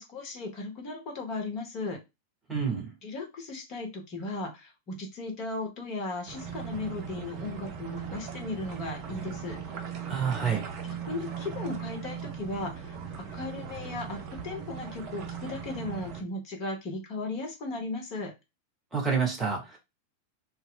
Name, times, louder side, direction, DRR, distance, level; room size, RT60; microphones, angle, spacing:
voice 1, 0.0-2.0 3.0-9.6 10.1-10.3 10.8-13.0 13.3-18.3, left 2 dB, 40° left, 0.9 m, -36 dB
voice 2, 2.5-2.9 10.1-10.6 18.9-19.8, right 6 dB, 15° right, 1.1 m, -28 dB
sound 1, 6.3-16.2, right 7 dB, 40° right, 0.6 m, -39 dB
2.1 x 2.0 x 3.6 m
figure-of-eight pair, 90°, 0 cm